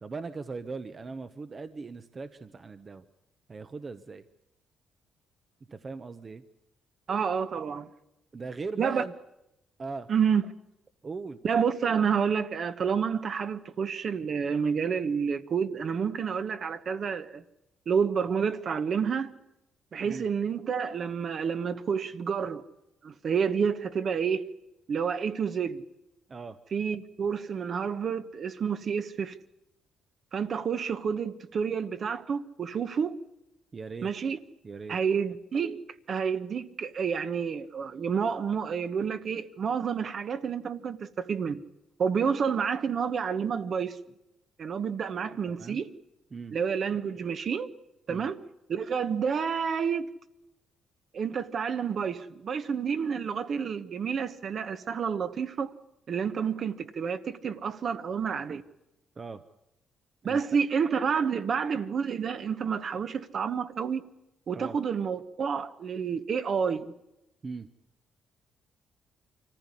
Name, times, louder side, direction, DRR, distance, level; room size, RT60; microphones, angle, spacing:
voice 1, 0.0-3.0 3.5-4.2 5.7-6.4 8.3-9.1 9.8-10.1 11.0-11.4 20.0-20.3 26.3-26.6 33.7-34.1 34.6-35.0 45.5-45.8 46.3-46.6 48.1-48.3 59.2-59.4 60.2-60.4 64.5-64.8 67.4-67.7, right 4 dB, 35° right, 0.9 m, -39 dB
voice 2, 7.1-7.9 8.8-9.0 10.1-10.4 11.4-17.4 17.9-19.3 19.9-22.6 23.0-24.4 24.9-25.8 26.7-29.4 30.3-33.1 34.0-34.4 34.9-41.6 42.0-44.0 44.6-45.9 46.5-47.7 48.1-48.4 48.7-50.1 51.1-55.7 56.1-58.6 60.2-64.0 64.5-66.9, right 6 dB, 55° right, 1.2 m, -29 dB
24.0 x 15.0 x 9.8 m
cardioid pair, 90°, 0 cm